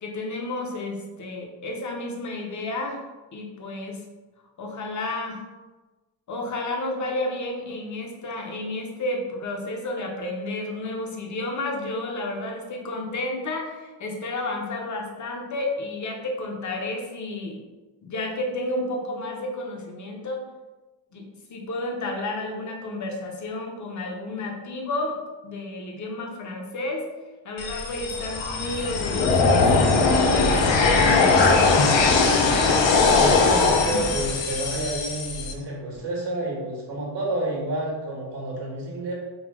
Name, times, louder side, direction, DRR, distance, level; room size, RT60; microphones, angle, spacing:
voice 1, 0.0-3.0 3.3-4.0 4.6-5.4 6.3-17.6 18.0-20.4 21.1-25.2 25.4-27.0 27.4-31.8, left 2 dB, 40° left, 1 dB, 0.7 m, -31 dB
sound 1, 27.6-35.5, left 4 dB, 70° left, 0.6 m, -20 dB
voice 2, 32.9-39.1, right 2 dB, 65° right, -3 dB, 1.5 m, -30 dB
4.0 x 2.3 x 4.6 m, 1.2 s
wide cardioid pair, 160°, 46 cm